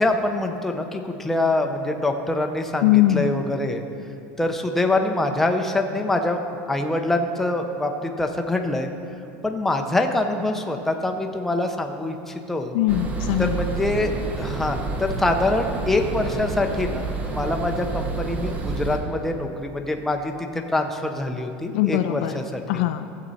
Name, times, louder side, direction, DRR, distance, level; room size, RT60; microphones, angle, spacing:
voice 1, 0.0-3.8 4.4-6.4 6.7-8.9 9.4-12.8 13.4-22.6, left 2 dB, 5° left, 4 dB, 0.7 m, -25 dB
voice 2, 2.8-3.3 12.7-13.6 21.7-22.4 22.7-23.1, left 13 dB, 70° left, 8 dB, 0.4 m, -21 dB
sound 1, 12.9-19.0, right 3 dB, 25° right, 0.9 m, -29 dB
15.0 x 7.6 x 4.1 m, 2.7 s
supercardioid pair, 155°, 6 cm